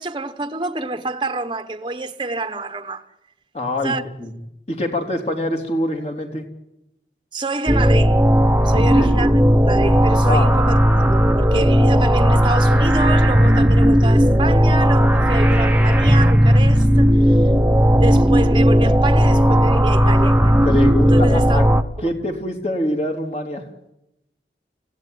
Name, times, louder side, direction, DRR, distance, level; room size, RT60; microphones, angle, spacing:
voice 1, 0.0-3.0 3.8-4.0 7.3-8.2 8.6-17.5 18.0-20.6 21.0-21.6 22.0-22.1, right 2 dB, 25° right, 1.2 m, -27 dB
voice 2, 3.5-4.3 4.7-6.4 8.7-9.2 10.3-10.6 20.6-21.7 22.0-23.6, left 1 dB, 35° left, 3.4 m, -25 dB
sound 1, 7.7-21.8, equal, 10° right, 1.1 m, -15 dB
29.0 x 16.0 x 9.5 m
head